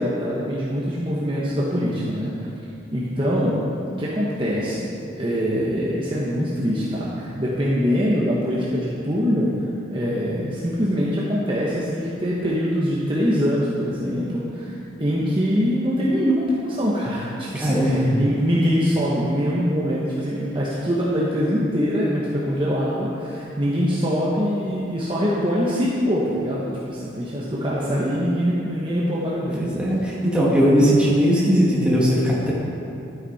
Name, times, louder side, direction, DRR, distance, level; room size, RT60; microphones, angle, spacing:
voice 1, 0.0-2.3 2.9-3.5 4.0-4.9 5.2-9.5 9.9-29.7, equal, 25° right, -7 dB, 1.2 m, -23 dB
voice 2, 17.5-18.0 29.6-32.5, equal, 5° right, -6 dB, 2.0 m, -19 dB
13.0 x 9.3 x 4.2 m, 2.6 s
head